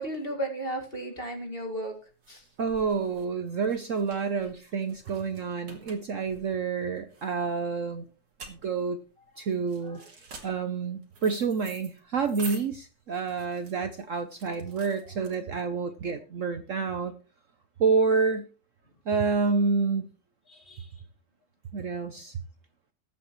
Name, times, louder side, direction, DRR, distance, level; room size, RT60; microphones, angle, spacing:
voice 1, 0.0-2.0 2.3-2.5 9.3-9.4 9.8-10.5 15.0-15.3 17.9-18.0 20.5-20.9, right 1 dB, 30° left, 2 dB, 2.3 m, -36 dB
sound 1, 1.4-15.8, right 4 dB, 90° right, 2.7 m, -48 dB
voice 2, 2.6-8.0 8.5-9.0 9.4-10.0 10.4-17.1 17.8-18.5 19.1-20.1 21.7-22.4, right 5 dB, 55° right, 9 dB, 1.0 m, -28 dB
20.5 x 7.7 x 3.1 m, 0.34 s
omnidirectional pair, 1.9 m